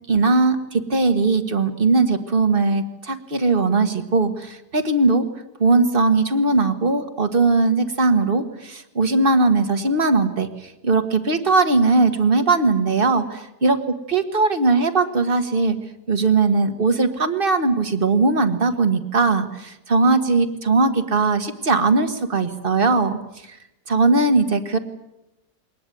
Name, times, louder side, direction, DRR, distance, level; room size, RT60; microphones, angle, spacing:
voice 1, 0.1-5.3 5.6-15.8 16.1-23.2 23.5-23.6 23.9-24.8, right 3 dB, 35° right, 8 dB, 1.7 m, -19 dB
22.0 x 19.0 x 9.3 m, 0.92 s
omnidirectional pair, 1.7 m